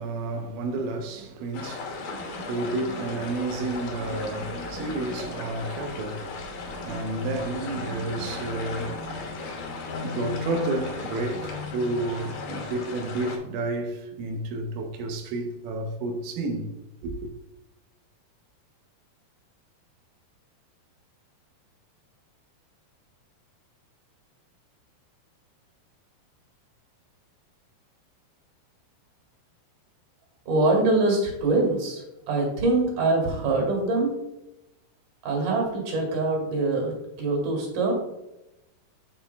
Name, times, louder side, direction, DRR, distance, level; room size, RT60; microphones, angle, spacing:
voice 1, 0.0-9.5 10.0-16.7 17.0-17.3, right 2 dB, 80° right, 1.9 m, -31 dB
sound 1, 1.5-13.4, left 4 dB, 85° left, 3.4 m, -36 dB
voice 2, 30.5-34.1 35.2-37.9, right 2 dB, 55° right, 3.3 m, -24 dB
8.4 x 7.8 x 2.2 m
omnidirectional pair, 4.6 m